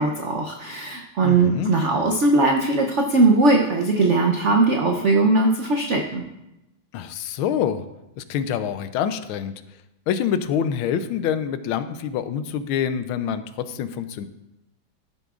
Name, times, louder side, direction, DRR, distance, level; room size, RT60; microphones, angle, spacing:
voice 1, 0.0-6.2, right 3 dB, 85° right, 2 dB, 0.6 m, -19 dB
voice 2, 1.2-1.7 6.9-7.8 8.2-9.5 10.1-14.3, left 8 dB, 90° left, 12 dB, 1.4 m, -26 dB
14.0 x 6.9 x 2.4 m, 0.92 s
omnidirectional pair, 2.2 m